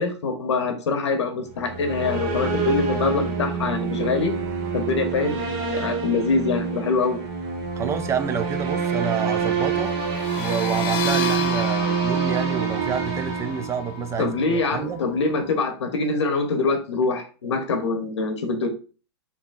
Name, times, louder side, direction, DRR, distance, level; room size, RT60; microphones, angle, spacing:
voice 1, 0.0-4.3 4.7-7.2 14.2-18.7, left 3 dB, 75° left, 0.8 m, -24 dB
sound 1, 1.5-14.3, right 5 dB, 50° right, 1.0 m, -26 dB
voice 2, 7.8-9.9 10.4-15.0, right 7 dB, 20° right, 0.4 m, -28 dB
sound 2, 10.1-15.5, left 9 dB, 35° left, 0.5 m, -33 dB
5.0 x 2.9 x 2.3 m
hypercardioid pair, 110°, 15 cm